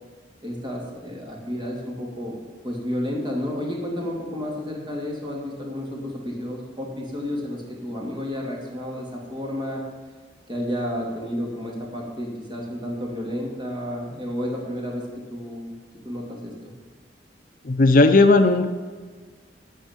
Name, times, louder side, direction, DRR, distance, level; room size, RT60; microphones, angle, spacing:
voice 1, 0.4-2.4 2.6-9.8 10.5-15.0 15.3-15.7 16.0-16.5, equal, 25° right, -2 dB, 2.7 m, -31 dB
voice 2, 17.6-18.7, left 2 dB, 50° left, 8 dB, 0.6 m, -15 dB
12.0 x 5.5 x 8.9 m, 1.5 s
head